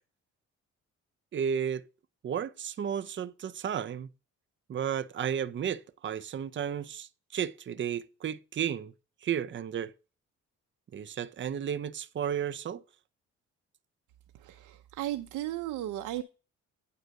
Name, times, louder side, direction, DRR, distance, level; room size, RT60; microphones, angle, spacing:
voice 1, 1.3-1.9 2.2-4.1 4.7-8.9 9.2-9.9 10.9-12.8, right 8 dB, 40° right, 0.6 m, -33 dB
voice 2, 14.4-16.2, right 14 dB, 90° right, 0.7 m, -35 dB
9.4 x 3.9 x 6.4 m
cardioid pair, 90°, 30 cm